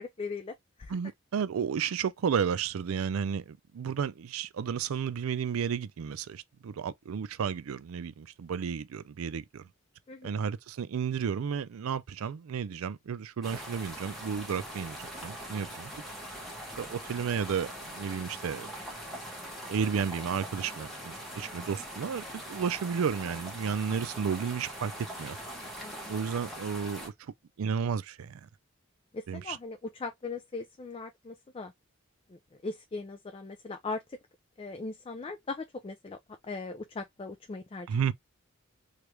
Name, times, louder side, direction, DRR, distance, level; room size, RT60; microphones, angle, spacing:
voice 1, 0.0-1.0 10.1-10.3 21.5-21.6 25.8-26.1 29.1-31.7 32.6-34.2 34.6-36.2 36.4-37.9, left 3 dB, 25° left, 0.3 m, -39 dB
voice 2, 0.9-9.6 10.2-15.9 16.8-18.7 19.7-24.9 25.2-25.4 26.1-28.4 29.3-29.6 37.9-38.1, right 7 dB, 90° right, 0.4 m, -32 dB
sound 1, 13.4-27.1, equal, ahead, 1.0 m, -42 dB
3.3 x 2.4 x 3.0 m
head